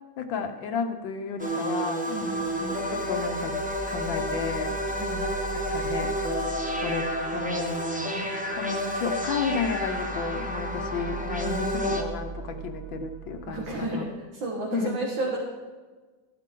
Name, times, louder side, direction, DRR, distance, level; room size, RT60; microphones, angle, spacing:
voice 1, 0.2-2.0 2.6-3.6 3.9-4.8 5.7-6.1 6.8-14.2 14.7-15.0, left 5 dB, 75° left, 7 dB, 1.6 m, -32 dB
sound 1, 1.4-12.0, equal, 10° right, 0.5 m, -30 dB
voice 2, 2.1-2.4 5.0-5.2 11.4-12.0 13.5-14.1 14.4-15.4, right 2 dB, 75° right, -4 dB, 2.4 m, -32 dB
sound 2, 2.2-13.9, right 3 dB, 45° right, 1.0 m, -40 dB
14.0 x 11.5 x 3.8 m, 1.3 s
omnidirectional pair, 2.1 m